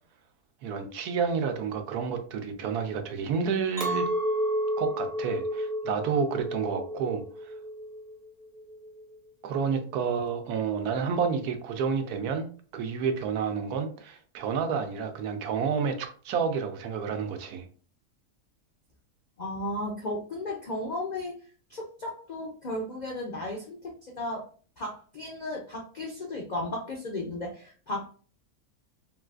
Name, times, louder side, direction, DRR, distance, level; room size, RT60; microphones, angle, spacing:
voice 1, 0.6-4.1 4.8-7.6 9.4-17.6, right 6 dB, 90° right, 1.1 m, -30 dB
Chink clink, 3.8-9.1, equal, 40° right, 0.6 m, -32 dB
voice 2, 19.4-21.4 21.7-24.5 24.8-28.1, left 1 dB, 90° left, 0.4 m, -35 dB
3.6 x 2.4 x 2.3 m
omnidirectional pair, 1.6 m